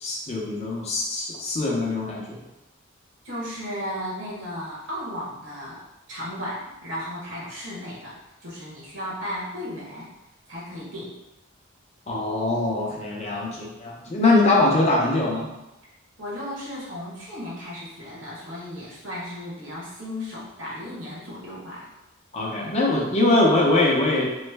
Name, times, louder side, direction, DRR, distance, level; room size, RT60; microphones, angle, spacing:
voice 1, 0.0-2.4 12.1-15.5 22.3-24.4, left 2 dB, 35° left, -3 dB, 0.6 m, -22 dB
voice 2, 3.2-10.1 10.5-11.2 14.0-14.2 16.2-21.9, equal, 65° right, -6 dB, 1.1 m, -35 dB
3.1 x 2.1 x 3.2 m, 0.95 s
head